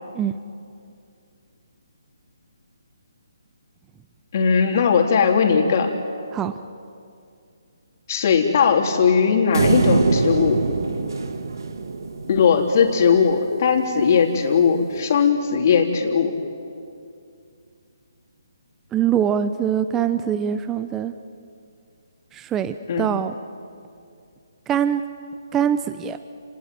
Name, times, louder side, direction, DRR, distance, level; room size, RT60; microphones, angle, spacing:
voice 1, 4.3-5.9 8.1-10.6 12.3-16.3 22.9-23.1, left 6 dB, 45° left, 3 dB, 3.5 m, -18 dB
sound 1, 9.5-12.9, right 4 dB, 70° right, 2.2 m, -23 dB
voice 2, 18.9-21.1 22.3-23.4 24.7-25.0 25.5-26.2, right 9 dB, 10° right, 11 dB, 0.7 m, -23 dB
30.0 x 19.0 x 9.5 m, 2.5 s
hypercardioid pair, 155°, 2 cm